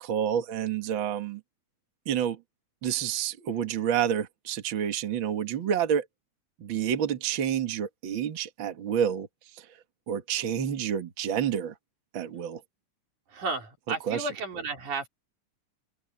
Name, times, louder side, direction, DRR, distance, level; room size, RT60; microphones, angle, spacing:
voice 1, 0.0-1.4 2.1-2.4 2.8-6.1 6.6-9.3 9.5-9.7 10.1-11.7 12.1-12.6 14.1-14.3, right 9 dB, 45° right, 2.2 m, -29 dB
voice 2, 13.3-15.1, right 4 dB, 85° right, 4.9 m, -33 dB
open air
omnidirectional pair, 3.4 m